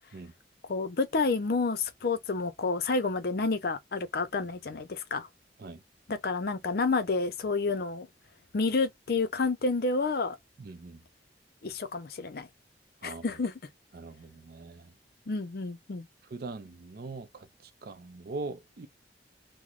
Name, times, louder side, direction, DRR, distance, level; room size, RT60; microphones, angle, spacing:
voice 1, 0.7-5.3 6.1-8.1 8.5-10.4 11.6-12.5 13.0-13.5 15.3-16.1, left 3 dB, 60° left, 0.5 m, -29 dB
voice 2, 10.6-11.0 13.0-13.2 13.9-14.9 16.3-18.9, right 3 dB, 55° right, 0.5 m, -41 dB
3.0 x 2.0 x 3.6 m
head